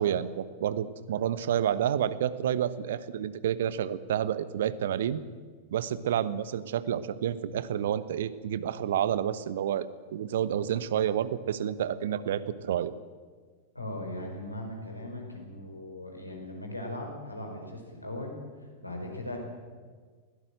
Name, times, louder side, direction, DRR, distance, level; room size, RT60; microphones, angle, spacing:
voice 1, 0.0-5.2 5.7-12.9, right 10 dB, 60° right, 16 dB, 1.0 m, -29 dB
voice 2, 13.7-19.4, left 1 dB, 85° left, 1 dB, 5.0 m, -39 dB
22.0 x 17.0 x 7.8 m, 1.5 s
figure-of-eight pair, 90°, 0 cm